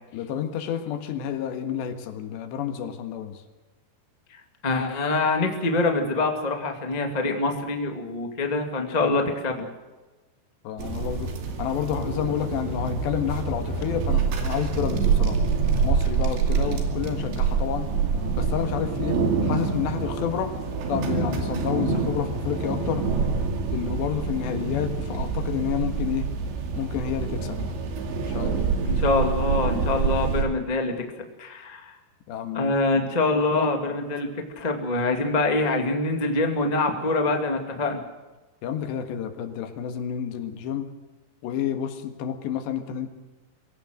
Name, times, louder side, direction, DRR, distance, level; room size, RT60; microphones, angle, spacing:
voice 1, 0.1-3.4 9.0-9.1 10.7-11.3 11.6-15.4 15.8-17.9 18.4-20.5 20.9-23.0 23.7-26.3 26.8-27.7 28.3-28.6 32.3-33.1 33.3-33.7 38.6-40.9 41.4-43.2, left 9 dB, 75° left, 8 dB, 3.7 m, -30 dB
voice 2, 4.3-9.6 28.8-31.9 32.5-34.3 34.5-38.0, left 3 dB, 25° left, 3 dB, 0.9 m, -25 dB
sound 1, 10.8-30.4, right 5 dB, 80° right, 4.7 m, -26 dB
23.5 x 16.0 x 7.9 m, 1.2 s
omnidirectional pair, 5.1 m